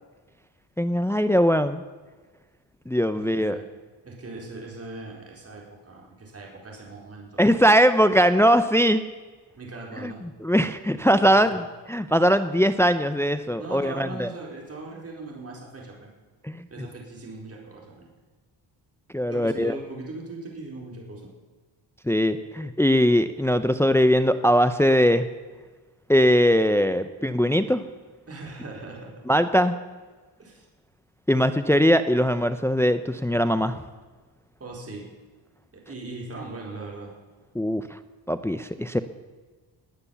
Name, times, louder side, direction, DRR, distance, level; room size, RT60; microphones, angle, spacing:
voice 1, 0.8-1.8 2.9-3.6 7.4-9.0 10.0-10.1 10.4-11.6 11.9-14.3 16.4-16.6 19.1-19.7 22.1-25.3 26.1-27.8 29.3-29.7 31.3-33.8 37.5-38.0 38.3-39.0, equal, 5° left, 11 dB, 0.6 m, -21 dB
voice 2, 3.1-3.6 4.0-7.4 9.6-10.2 11.4-11.6 13.6-16.1 16.7-18.1 19.3-21.3 28.3-29.2 30.4-30.7 34.6-35.1 35.7-37.1, right 2 dB, 30° right, -2 dB, 4.5 m, -39 dB
19.5 x 9.6 x 7.1 m, 1.3 s
cardioid pair, 100°, 46 cm